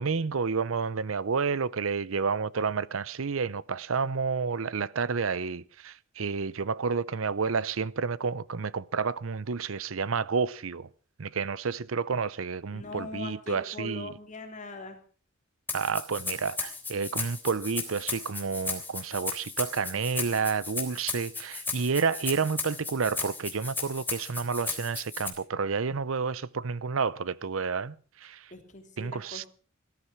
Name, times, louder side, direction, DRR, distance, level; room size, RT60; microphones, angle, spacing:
voice 1, 0.0-10.9 11.2-14.1 15.7-27.9 28.2-28.4 29.0-29.5, right 5 dB, 80° right, 0.7 m, -30 dB
voice 2, 12.7-15.0 28.5-29.5, left 2 dB, 40° left, 3.3 m, -41 dB
Rattle (instrument), 15.7-25.3, left 4 dB, 10° left, 3.6 m, -35 dB
18.0 x 13.5 x 6.0 m
head